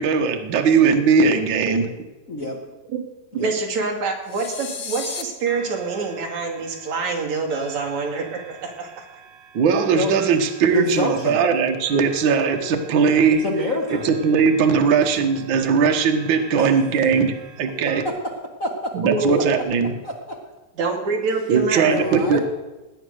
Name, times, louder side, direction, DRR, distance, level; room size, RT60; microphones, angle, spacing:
voice 1, 0.0-1.9 9.5-13.4 13.9-18.0 19.0-19.9 21.5-22.4, right 5 dB, 80° right, 4 dB, 1.0 m, -19 dB
voice 2, 2.3-2.6 3.3-3.5 9.9-10.1 10.7-11.4 13.4-14.1 16.6-16.7 18.6-18.9 20.0-20.1 21.8-22.4, left 2 dB, 50° left, 0 dB, 0.9 m, -26 dB
voice 3, 3.3-9.0 18.9-19.6 20.8-21.9, right 4 dB, 55° right, 2 dB, 3.3 m, -26 dB
sound 1, 4.3-5.2, left 5 dB, 80° left, 1.0 m, -32 dB
sound 2, 5.4-18.0, right 7 dB, 35° right, 1.5 m, -45 dB
18.0 x 9.5 x 6.5 m, 1.1 s
omnidirectional pair, 4.1 m